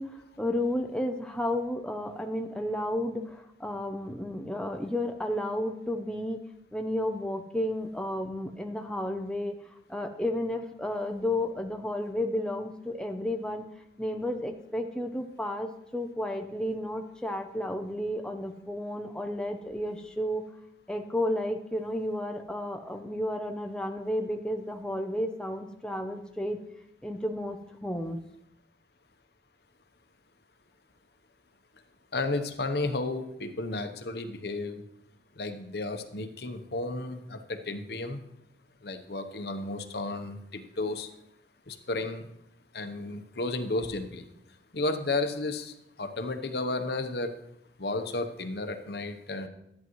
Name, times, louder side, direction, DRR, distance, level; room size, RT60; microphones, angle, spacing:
voice 1, 0.0-6.4 6.7-9.6 9.9-13.6 14.0-20.4 20.9-26.6 27.0-28.2, left 1 dB, 5° left, 4 dB, 0.6 m, -32 dB
voice 2, 32.1-34.8 35.4-38.2 38.8-41.1 41.7-42.2 42.7-44.2 44.7-45.7 46.0-47.3 47.8-49.5, left 2 dB, 60° left, 8 dB, 0.9 m, -33 dB
13.5 x 9.4 x 3.1 m, 0.80 s
head